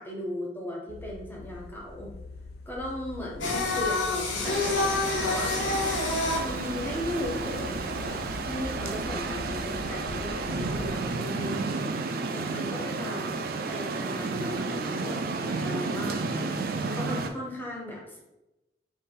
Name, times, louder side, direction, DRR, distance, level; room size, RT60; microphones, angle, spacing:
voice 1, 0.0-2.1 2.7-5.6 6.4-11.8 12.3-18.2, left 1 dB, 10° left, -3 dB, 0.9 m, -37 dB
sound 1, 0.9-10.9, left 2 dB, 60° left, 0.4 m, -42 dB
Singing, 3.4-8.4, left 3 dB, 85° left, 0.7 m, -28 dB
sound 2, 4.4-17.3, right 3 dB, 50° right, 0.4 m, -32 dB
4.0 x 2.6 x 3.8 m, 0.96 s
head